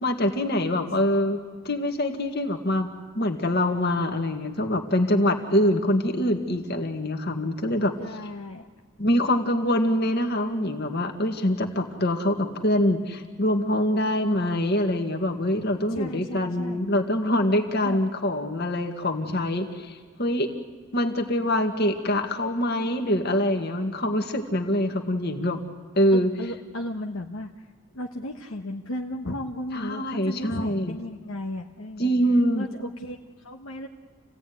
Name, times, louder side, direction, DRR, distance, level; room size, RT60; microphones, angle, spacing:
voice 1, 0.0-2.9 3.2-7.9 9.0-20.5 20.9-25.6 25.9-26.3 29.7-31.0 32.0-32.7, left 1 dB, 45° left, 4 dB, 1.9 m, -24 dB
voice 2, 8.0-8.7 15.9-16.8 17.8-18.0 19.3-19.4 26.1-27.7 27.9-32.1 32.6-33.9, left 1 dB, 70° left, 1 dB, 1.2 m, -35 dB
28.0 x 16.5 x 9.5 m, 1.5 s
head